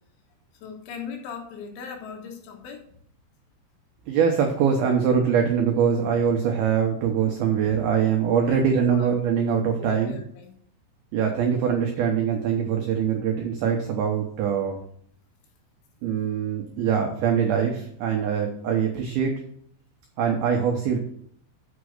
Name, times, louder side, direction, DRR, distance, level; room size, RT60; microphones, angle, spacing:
voice 1, 0.5-3.0 7.6-7.8 8.5-9.1 9.8-10.6, left 6 dB, 75° left, 3 dB, 3.7 m, -39 dB
voice 2, 4.1-10.2 11.1-14.8 16.0-19.3 20.2-21.0, right 7 dB, 80° right, 2 dB, 2.2 m, -23 dB
7.3 x 6.1 x 6.4 m, 0.64 s
omnidirectional pair, 5.8 m